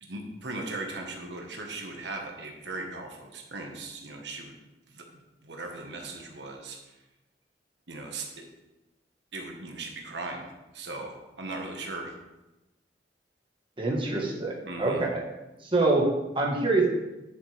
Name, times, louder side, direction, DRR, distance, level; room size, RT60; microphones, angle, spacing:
voice 1, 0.0-4.5 4.9-5.0 5.4-6.8 7.9-8.4 9.3-12.1 14.6-15.0, right 2 dB, 75° right, 2 dB, 1.3 m, -38 dB
voice 2, 13.8-15.2 15.6-16.9, right 2 dB, 30° right, -2 dB, 1.4 m, -25 dB
10.5 x 7.0 x 3.4 m, 1.0 s
head